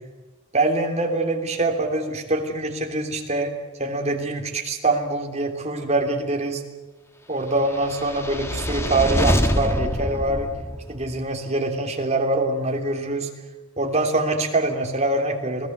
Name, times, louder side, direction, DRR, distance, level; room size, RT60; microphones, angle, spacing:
voice 1, 0.5-3.5 3.8-6.6 7.3-10.5 10.9-13.3 13.8-15.7, right 2 dB, 30° right, 3 dB, 3.2 m, -24 dB
sound 1, 7.7-11.2, equal, 10° left, 1.6 m, -25 dB
28.5 x 18.5 x 8.1 m, 1.2 s
head